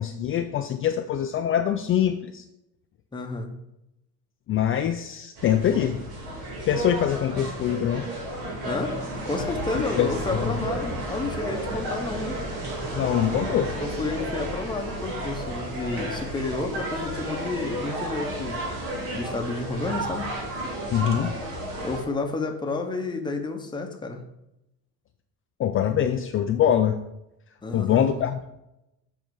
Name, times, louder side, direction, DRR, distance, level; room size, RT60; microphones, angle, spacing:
voice 1, 0.0-2.4 4.5-6.0 6.7-8.1 9.7-10.1 10.4-10.5 12.9-13.7 20.9-21.3 25.6-27.0 27.7-28.5, left 10 dB, 35° left, 6 dB, 0.4 m, -24 dB
voice 2, 3.1-3.5 8.6-9.0 9.2-12.4 13.8-18.7 19.1-20.3 21.8-24.2 27.6-28.1, left 3 dB, 10° left, 3 dB, 0.9 m, -30 dB
sound 1, 5.4-22.0, right 1 dB, 70° right, 2.7 m, -32 dB
7.3 x 4.4 x 6.3 m, 0.87 s
cardioid pair, 160°, 38 cm